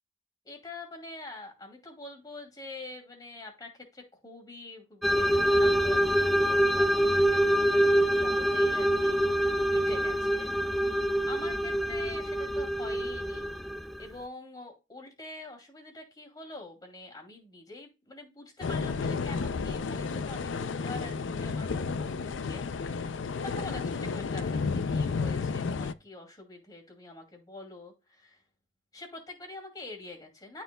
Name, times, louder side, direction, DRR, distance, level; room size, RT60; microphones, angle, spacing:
voice 1, 0.4-10.5 11.3-13.5 14.0-28.4 28.9-30.6, left 2 dB, 20° left, 2 dB, 2.5 m, -45 dB
sound 1, 5.0-14.1, right 1 dB, ahead, 0.3 m, -25 dB
sound 2, 18.6-25.9, left 4 dB, 75° left, 0.4 m, -32 dB
13.0 x 4.6 x 2.3 m, 0.28 s
head